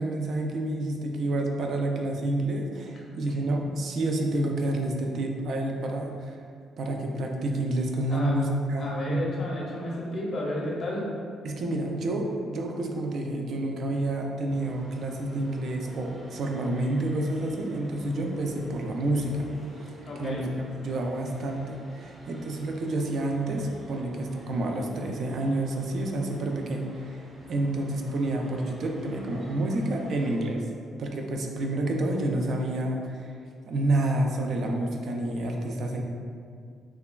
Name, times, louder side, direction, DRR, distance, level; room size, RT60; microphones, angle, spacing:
voice 1, 0.0-6.4 6.8-9.2 11.4-19.5 19.8-20.5 20.8-30.6 31.0-33.3 33.7-36.0, right 1 dB, 60° right, 2 dB, 0.3 m, -29 dB
voice 2, 8.8-11.0 20.1-20.5, left 1 dB, 55° left, -3 dB, 0.6 m, -32 dB
sound 1, 14.5-30.5, right 1 dB, 20° right, 0.6 m, -49 dB
3.2 x 2.2 x 2.2 m, 2.2 s
cardioid pair, 90°, 0 cm